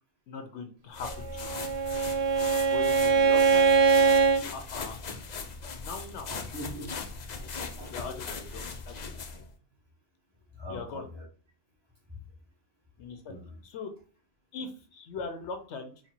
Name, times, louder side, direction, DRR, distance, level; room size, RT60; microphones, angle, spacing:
voice 1, 0.3-1.6 2.1-2.2 2.7-3.9 4.5-5.0 5.8-6.3 7.9-9.0 10.7-11.1 13.0-13.3 13.6-13.9 14.5-15.9, left 4 dB, 70° left, 7 dB, 0.9 m, -40 dB
sound 1, 0.9-9.5, left 4 dB, 50° left, 0.5 m, -39 dB
Bowed string instrument, 1.3-4.5, right 5 dB, 55° right, 0.4 m, -22 dB
voice 2, 6.3-6.9 7.4-8.2 9.3-9.4 10.6-11.2 13.3-13.6, equal, 20° right, -1 dB, 1.2 m, -43 dB
4.2 x 2.2 x 4.3 m, 0.39 s
omnidirectional pair, 1.3 m